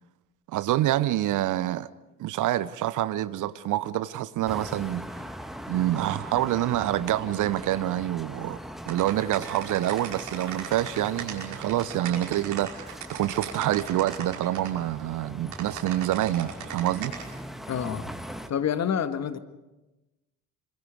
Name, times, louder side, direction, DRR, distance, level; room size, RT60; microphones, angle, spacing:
voice 1, 0.5-1.9 2.2-5.0 5.7-8.6 8.9-17.1, right 13 dB, 45° right, 0.8 m, -27 dB
sound 1, 4.4-18.5, equal, ahead, 1.7 m, -41 dB
sound 2, 8.9-14.7 15.5-17.2, right 9 dB, 70° right, 5.6 m, -37 dB
voice 2, 17.7-18.0 18.5-19.4, left 8 dB, 35° left, 1.6 m, -27 dB
27.0 x 26.0 x 5.0 m
figure-of-eight pair, 60°, 44 cm